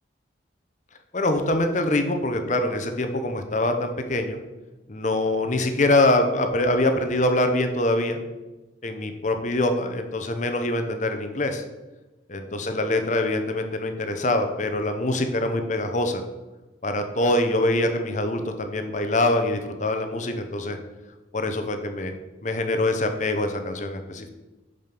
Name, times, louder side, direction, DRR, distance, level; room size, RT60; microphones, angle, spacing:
voice 1, 1.1-4.4 4.9-8.2 8.8-11.6 12.3-16.2 16.8-20.8 21.3-24.3, left 1 dB, 40° left, 6 dB, 0.8 m, -24 dB
7.3 x 5.2 x 5.9 m, 1.1 s
head